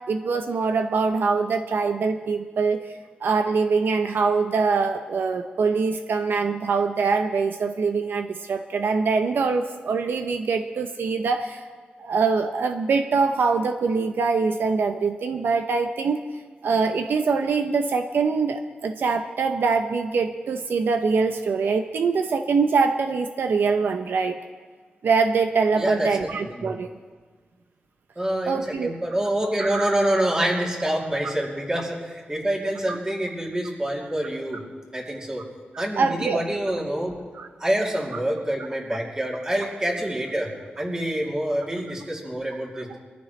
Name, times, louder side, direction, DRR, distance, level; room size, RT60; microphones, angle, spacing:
voice 1, 0.0-2.8 3.2-11.6 12.0-16.2 16.6-24.4 25.0-26.9 28.5-28.9 29.6-29.9 32.9-33.0 36.0-36.4 37.3-37.5, right 4 dB, 80° right, 6 dB, 0.7 m, -23 dB
voice 2, 25.8-26.1 26.4-26.7 28.2-34.6 34.9-35.4 35.8-37.2 37.6-40.5 40.8-43.0, right 1 dB, 20° right, -2 dB, 2.9 m, -26 dB
23.0 x 14.5 x 3.3 m, 1.5 s
wide cardioid pair, 125°, 4 cm